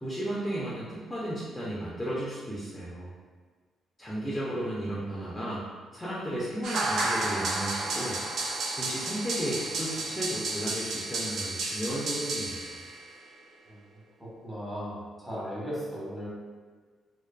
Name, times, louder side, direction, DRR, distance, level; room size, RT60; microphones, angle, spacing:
voice 1, 0.0-3.1 4.0-5.6 5.9-8.2 8.8-12.8, right 1 dB, 10° left, -8 dB, 0.5 m, -34 dB
sound 1, 6.6-13.0, right 2 dB, 70° right, 0.4 m, -32 dB
voice 2, 14.4-16.3, equal, 15° right, -7 dB, 1.1 m, -36 dB
2.6 x 2.4 x 2.2 m, 1.5 s
cardioid pair, 90°, 0 cm